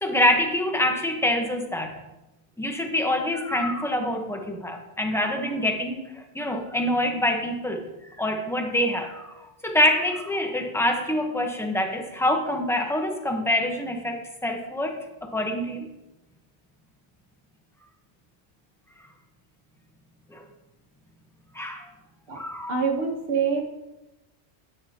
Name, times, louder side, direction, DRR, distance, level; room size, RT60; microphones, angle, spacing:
voice 1, 0.0-2.0 2.6-15.9 20.3-20.5 21.5-21.9 22.3-22.8, left 1 dB, 5° left, 3 dB, 0.9 m, -26 dB
voice 2, 22.7-23.6, right 5 dB, 60° right, 1 dB, 1.4 m, -25 dB
9.8 x 9.4 x 2.9 m, 0.98 s
omnidirectional pair, 1.1 m